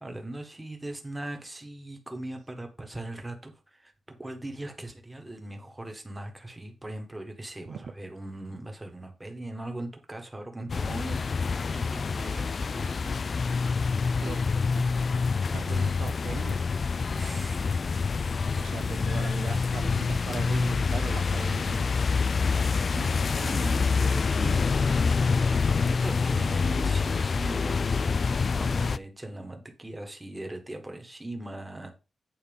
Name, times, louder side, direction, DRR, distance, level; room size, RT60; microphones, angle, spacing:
voice 1, 0.0-13.2 17.2-17.7 22.5-24.9 25.2-28.1 28.5-31.9, right 1 dB, 10° right, 3 dB, 1.5 m, -40 dB
sound 1, 10.7-29.0, left 5 dB, 40° left, 0.3 m, -26 dB
sound 2, 15.5-18.3 18.7-21.5, left 2 dB, 10° left, 1.4 m, -43 dB
voice 2, 15.5-17.0 18.5-21.9, right 5 dB, 75° right, 9 dB, 0.6 m, -39 dB
9.0 x 4.2 x 5.4 m, 0.31 s
wide cardioid pair, 165°, 0 cm